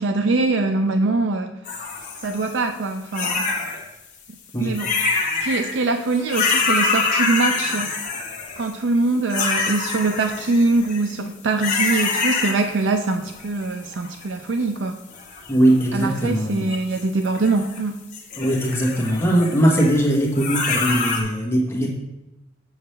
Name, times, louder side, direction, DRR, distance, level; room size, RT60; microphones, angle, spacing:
voice 1, 0.0-1.5 2.2-3.5 4.6-4.9 5.2-7.9 8.6-14.9 15.9-18.0, right 3 dB, 70° right, 6 dB, 0.5 m, -23 dB
sound 1, 1.7-2.5 3.1-3.8 4.7-5.7 6.1-8.7 9.3-11.1 11.6-12.9 13.2-14.2 15.1-16.2 16.7-17.8 18.1-21.2, left 4 dB, 40° left, 1.4 m, -25 dB
voice 2, 15.5-16.6 18.4-21.9, right 1 dB, 15° left, -3 dB, 1.4 m, -20 dB
7.1 x 7.0 x 3.3 m, 0.96 s
head